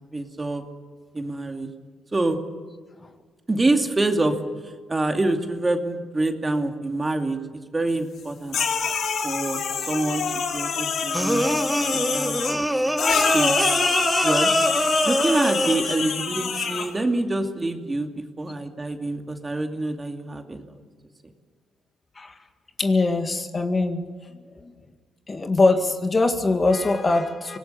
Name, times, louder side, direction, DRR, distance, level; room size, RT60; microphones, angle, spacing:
voice 1, 0.1-0.6 1.1-1.7 2.1-2.4 3.5-4.4 4.9-8.6 9.2-9.6 9.9-10.2 10.5-11.5 11.9-12.8 13.3-13.8 14.2-14.5 15.0-20.8 21.2-21.3, right 2 dB, 20° right, 4 dB, 2.5 m, -26 dB
sound 1, 8.5-12.6 13.0-16.9, left 6 dB, 70° left, 3.8 m, -26 dB
sound 2, 11.1-16.0, equal, 5° right, 1.1 m, -24 dB
voice 2, 22.8-24.1 24.6-24.7 25.3-27.6, left 3 dB, 30° left, 6 dB, 2.1 m, -22 dB
25.0 x 19.5 x 7.0 m, 1.5 s
cardioid pair, 90°, 0 cm